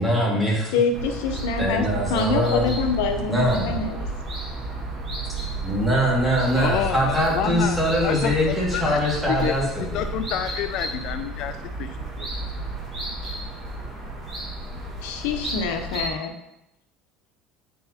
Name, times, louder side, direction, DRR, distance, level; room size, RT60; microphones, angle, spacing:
voice 1, 0.0-0.8 1.6-2.7 3.3-3.8 5.6-10.0, equal, 5° right, -4 dB, 2.1 m, -22 dB
voice 2, 0.7-4.1 15.0-16.3, left 4 dB, 85° left, 5 dB, 0.7 m, -25 dB
sound 1, 0.9-16.1, right 2 dB, 25° right, 1.8 m, -32 dB
voice 3, 6.6-9.0 9.3-9.6 9.9-12.5, left 10 dB, 60° left, 8 dB, 0.3 m, -29 dB
9.0 x 4.7 x 2.8 m, 0.87 s
supercardioid pair, 120°, 0 cm